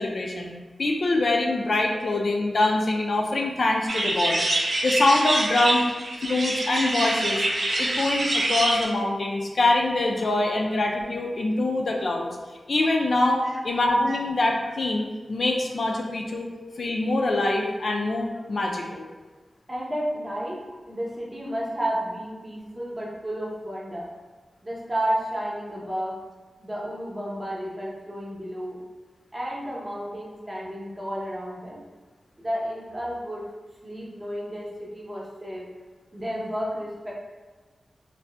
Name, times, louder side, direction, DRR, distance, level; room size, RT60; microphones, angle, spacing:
voice 1, 0.0-5.8 6.3-7.5 7.8-12.3 12.7-16.5 16.8-19.1, left 2 dB, 60° left, 0 dB, 0.3 m, -24 dB
sound 1, 3.9-8.8, right 1 dB, 60° right, 0.4 m, -25 dB
voice 2, 19.7-20.6 20.9-24.1 24.6-26.2 26.6-28.8 29.3-31.8 32.4-33.5 33.8-35.7 36.1-37.1, equal, 25° right, -4 dB, 0.7 m, -32 dB
2.5 x 2.1 x 3.3 m, 1.3 s
wide cardioid pair, 115°, 0 cm